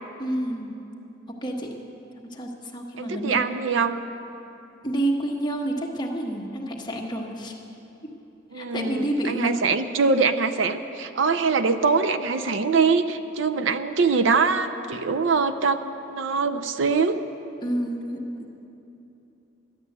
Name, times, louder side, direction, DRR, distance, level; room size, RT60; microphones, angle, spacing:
voice 1, 0.2-0.8 1.3-1.7 2.2-3.5 4.8-7.6 8.5-9.5 17.6-18.5, right 1 dB, 20° left, -1 dB, 1.3 m, -29 dB
voice 2, 3.0-4.0 8.5-15.8 16.1-17.2, right 4 dB, 65° right, 9 dB, 0.5 m, -23 dB
12.5 x 10.5 x 8.0 m, 2.9 s
head